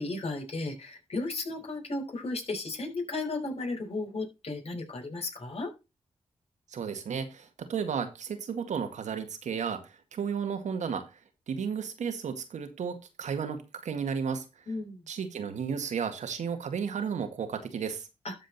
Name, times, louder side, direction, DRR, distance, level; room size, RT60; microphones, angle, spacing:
voice 1, 0.0-5.7 14.7-15.0 18.2-18.3, left 2 dB, 55° left, 5.2 m, -34 dB
voice 2, 6.7-11.1 11.5-14.4 15.1-18.1, right 6 dB, 80° right, 1.9 m, -33 dB
12.5 x 5.2 x 4.3 m
cardioid pair, 45°, 12 cm